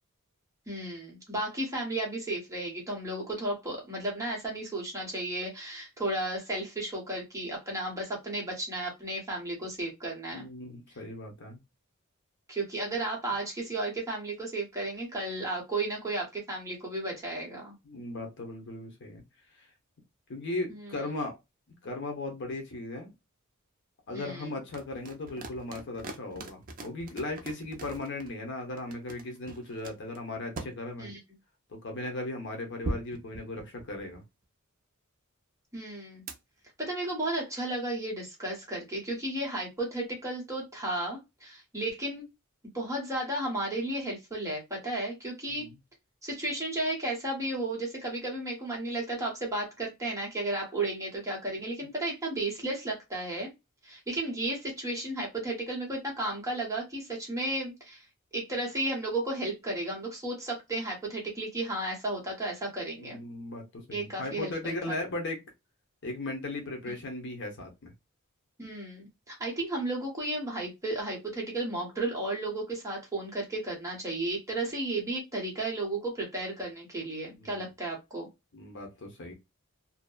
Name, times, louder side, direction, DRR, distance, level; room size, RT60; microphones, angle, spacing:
voice 1, 0.7-10.5 12.5-17.7 20.7-21.0 24.1-24.5 31.0-31.2 35.7-36.2 36.8-42.2 42.7-45.7 46.2-53.5 53.8-58.0 58.3-63.2 63.9-64.7 68.6-78.3, right 2 dB, 15° right, 1.0 m, -33 dB
voice 2, 10.3-11.6 17.8-19.2 19.5-19.7 20.3-21.4 21.8-23.1 24.1-31.1 31.7-34.2 45.5-45.7 63.0-65.4 66.0-67.9 77.4-77.6 78.5-79.3, left 2 dB, 55° left, 0.7 m, -37 dB
sound 1, 24.7-28.3 28.8-30.7 32.8-34.2 36.3-36.4, right 2 dB, 40° right, 0.5 m, -40 dB
2.6 x 2.1 x 2.3 m
head